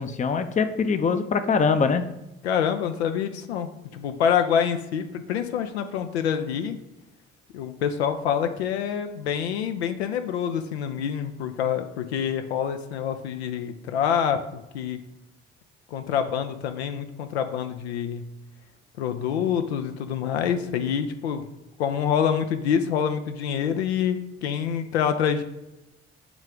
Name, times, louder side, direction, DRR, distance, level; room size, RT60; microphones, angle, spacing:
voice 1, 0.0-2.0, left 5 dB, 25° left, 9 dB, 0.6 m, -23 dB
voice 2, 2.4-6.8 7.5-15.0 15.9-18.3 19.0-21.5 21.8-25.4, left 8 dB, 75° left, 7 dB, 0.5 m, -26 dB
7.1 x 3.2 x 4.8 m, 0.96 s
figure-of-eight pair, 45°, 33 cm